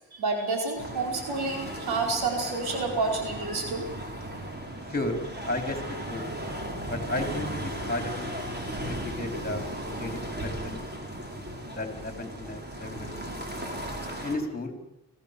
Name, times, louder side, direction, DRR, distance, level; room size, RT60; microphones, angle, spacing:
voice 1, 0.1-3.8, right 3 dB, 85° right, 2 dB, 5.0 m, -29 dB
sound 1, 0.7-14.4, right 1 dB, 25° right, 5.1 m, -36 dB
voice 2, 5.4-6.2 6.9-8.3 8.9-10.8 11.6-13.4 14.2-14.8, left 2 dB, 25° left, 4 dB, 4.4 m, -34 dB
25.5 x 15.5 x 7.0 m, 0.90 s
cardioid pair, 70°, 37 cm